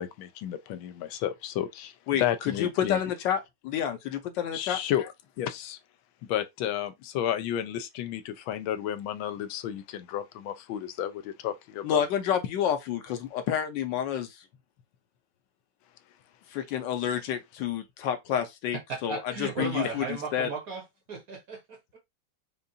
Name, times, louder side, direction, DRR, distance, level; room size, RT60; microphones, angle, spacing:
voice 1, 0.0-1.9 2.2-3.0 4.5-5.1 5.4-5.8 6.3-12.0, left 11 dB, 90° left, 1.4 m, -32 dB
voice 2, 2.1-4.8 11.8-14.4 16.5-20.5, left 9 dB, 70° left, 1.3 m, -29 dB
voice 3, 18.7-22.0, right 5 dB, 55° right, 1.2 m, -36 dB
5.2 x 2.4 x 2.7 m
omnidirectional pair, 2.1 m